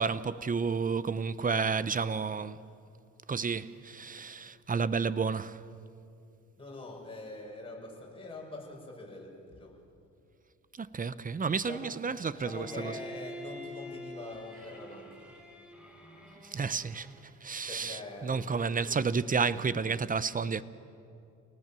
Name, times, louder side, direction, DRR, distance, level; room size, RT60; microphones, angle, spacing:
voice 1, 0.0-2.6 3.3-5.6 10.8-12.9 16.5-17.1 17.4-20.6, right 5 dB, 30° right, 0.8 m, -31 dB
voice 2, 6.6-9.8 11.6-11.9 12.3-15.3 17.7-19.2, left 2 dB, 20° left, 6.7 m, -44 dB
Bowed string instrument, 12.5-17.4, left 1 dB, 5° right, 4.4 m, -46 dB
28.5 x 19.0 x 7.6 m
cardioid pair, 90°, 30 cm